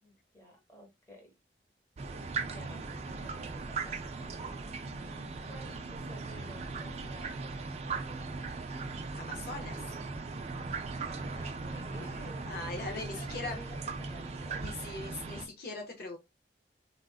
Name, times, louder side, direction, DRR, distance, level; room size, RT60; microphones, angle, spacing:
voice 1, 0.0-1.3 2.2-4.3 4.9-7.5 7.8-8.3 11.0-14.8, equal, 15° left, 1.1 m, -52 dB
sound 1, 2.0-15.5, right 4 dB, 35° right, 0.3 m, -39 dB
voice 2, 9.1-9.9 12.5-13.6 14.6-16.2, left 2 dB, 55° left, 0.6 m, -40 dB
3.4 x 2.4 x 2.3 m
head